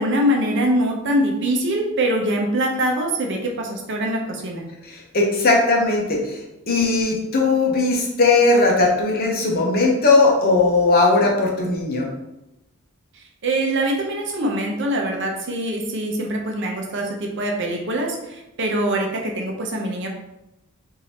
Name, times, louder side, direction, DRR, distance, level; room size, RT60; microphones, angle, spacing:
voice 1, 0.0-4.6 13.4-20.1, right 1 dB, 55° right, 1 dB, 0.7 m, -23 dB
voice 2, 4.9-6.4 6.7-12.1, left 3 dB, 45° left, -1 dB, 0.8 m, -18 dB
5.1 x 2.7 x 2.9 m, 0.92 s
head